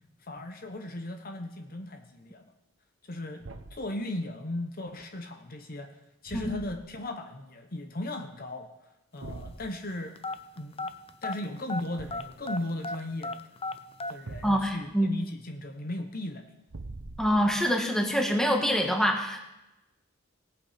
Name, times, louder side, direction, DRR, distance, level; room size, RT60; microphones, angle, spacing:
voice 1, 0.2-2.5 3.1-3.4 3.7-6.0 6.2-8.7 9.1-10.2 10.6-10.9 11.2-13.4 14.1-16.5, left 1 dB, 50° left, 6 dB, 1.1 m, -37 dB
Thump thud, 3.4-3.9 6.3-7.0 9.2-9.7 12.0-12.4 14.3-14.9 16.7-17.7, right 2 dB, 80° right, 0.9 m, -43 dB
sound 1, 10.2-11.9 12.1-14.2, left 2 dB, 30° left, 0.6 m, -34 dB
voice 2, 14.4-15.1 17.2-19.4, equal, 5° left, 2 dB, 1.5 m, -25 dB
18.5 x 8.3 x 5.0 m, 0.94 s
head